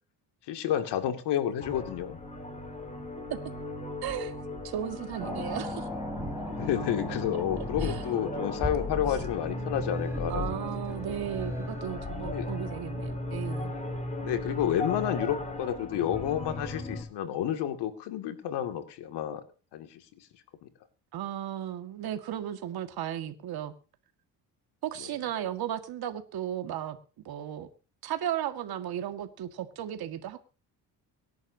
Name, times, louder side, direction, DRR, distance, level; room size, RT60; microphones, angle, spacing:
voice 1, 0.5-2.2 6.4-11.3 12.3-12.5 14.2-19.4 19.7-20.7 25.0-25.1, left 10 dB, 80° left, 2.4 m, -31 dB
sound 1, 1.6-17.0, left 1 dB, 15° left, 4.6 m, -37 dB
voice 2, 4.0-4.4 4.6-5.9 7.8-8.0 10.3-13.7 21.1-23.7 24.8-27.0 27.3-27.7 28.0-30.4, right 11 dB, 65° right, 1.9 m, -35 dB
sound 2, 5.2-14.0, left 2 dB, 5° right, 4.7 m, -39 dB
24.0 x 11.0 x 2.8 m
cardioid pair, 100°, 40 cm